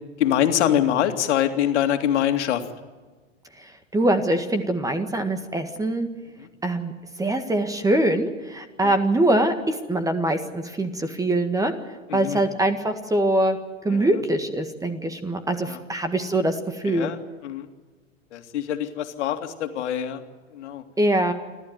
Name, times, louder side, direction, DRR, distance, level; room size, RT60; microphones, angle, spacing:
voice 1, 0.2-2.7 6.4-6.5 8.8-8.9 12.1-12.4 13.9-14.2 15.7-15.8 16.9-17.7 18.3-20.2 20.5-20.8, left 10 dB, 60° left, 6 dB, 2.4 m, -24 dB
voice 2, 3.9-6.1 6.6-6.9 7.2-11.7 12.1-13.6 13.8-16.6 16.8-17.1 21.0-21.3, right 1 dB, 10° right, 9 dB, 1.8 m, -23 dB
29.0 x 12.5 x 9.4 m, 1.3 s
hypercardioid pair, 115°, 38 cm